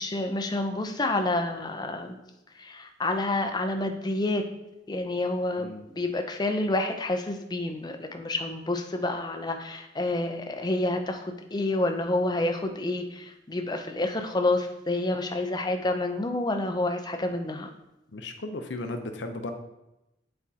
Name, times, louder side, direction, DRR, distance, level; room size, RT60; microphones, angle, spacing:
voice 1, 0.0-2.2 2.6-4.4 4.9-17.7, left 2 dB, 20° left, 5 dB, 0.5 m, -28 dB
voice 2, 18.1-19.5, left 2 dB, 70° left, 6 dB, 0.7 m, -35 dB
8.2 x 4.3 x 2.8 m, 0.91 s
head